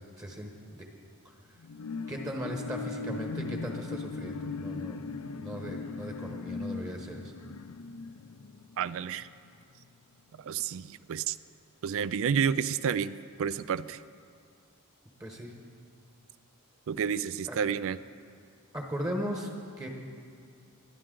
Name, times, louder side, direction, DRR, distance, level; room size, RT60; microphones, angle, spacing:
voice 1, 0.2-0.9 1.2-1.3 2.1-5.0 5.4-7.3 15.2-15.5 17.5-17.6 18.7-19.5 19.8-19.9, equal, 15° right, 1 dB, 1.1 m, -37 dB
sound 1, 1.6-9.4 9.8-9.9, left 4 dB, 75° left, 0.5 m, -39 dB
voice 2, 8.8-9.3 10.4-11.4 11.8-13.1 13.4-14.0 16.9-18.0, right 7 dB, 60° right, 15 dB, 0.3 m, -30 dB
20.5 x 11.0 x 3.8 m, 2.3 s
head